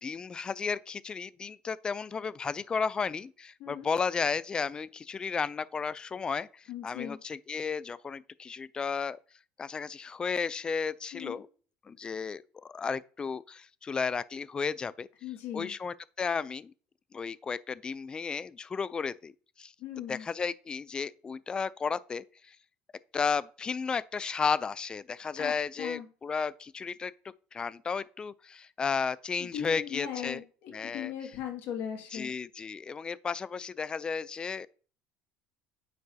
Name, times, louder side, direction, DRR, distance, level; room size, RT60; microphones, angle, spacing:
voice 1, 0.0-9.2 9.6-11.5 11.9-15.1 15.5-16.7 17.1-19.3 19.6-19.7 20.1-22.6 23.1-27.1 27.5-30.4 30.7-31.1 32.1-34.7, left 5 dB, 25° left, 0.3 m, -33 dB
voice 2, 6.7-7.2 11.1-11.4 15.2-15.7 19.8-20.3 25.4-25.5 25.8-26.1 29.4-32.3, left 9 dB, 65° left, 1.9 m, -38 dB
9.3 x 4.5 x 2.7 m
supercardioid pair, 110°, 4 cm